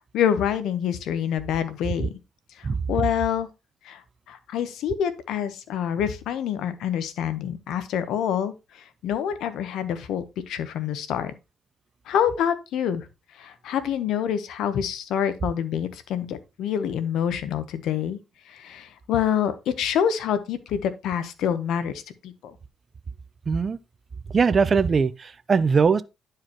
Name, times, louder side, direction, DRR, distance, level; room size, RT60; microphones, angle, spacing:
voice 1, 0.1-2.1 2.6-3.5 3.8-4.0 4.3-11.3 12.1-13.1 13.4-18.2 18.5-22.5, left 9 dB, 80° left, 0.9 m, -27 dB
voice 2, 23.5-23.8 24.3-26.0, right 5 dB, 40° right, 0.5 m, -21 dB
10.5 x 4.8 x 2.9 m
cardioid pair, 90°, 0 cm